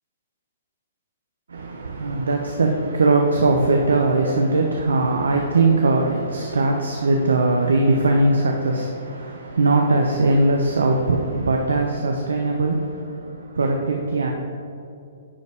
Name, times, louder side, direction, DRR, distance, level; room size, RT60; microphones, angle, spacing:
voice 1, 1.5-14.3, right 2 dB, 80° right, 2 dB, 0.6 m, -20 dB
9.7 x 4.2 x 3.5 m, 2.4 s
figure-of-eight pair, 125°, 0 cm